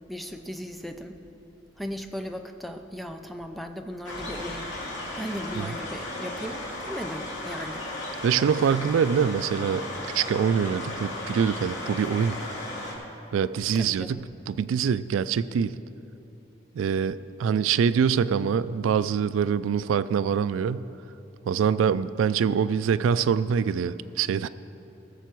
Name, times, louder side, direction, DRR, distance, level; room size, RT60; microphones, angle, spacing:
voice 1, 0.1-1.2 1.8-4.7 5.2-7.8 13.7-14.2, equal, ahead, 6 dB, 0.5 m, -37 dB
sound 1, 4.0-12.9, left 1 dB, 65° left, 2.5 m, -35 dB
voice 2, 8.2-9.8 10.1-12.4 13.3-14.2 14.5-15.8 16.7-20.8 21.4-24.5, right 7 dB, 85° right, 15 dB, 0.3 m, -24 dB
19.0 x 6.8 x 4.6 m, 2.9 s
head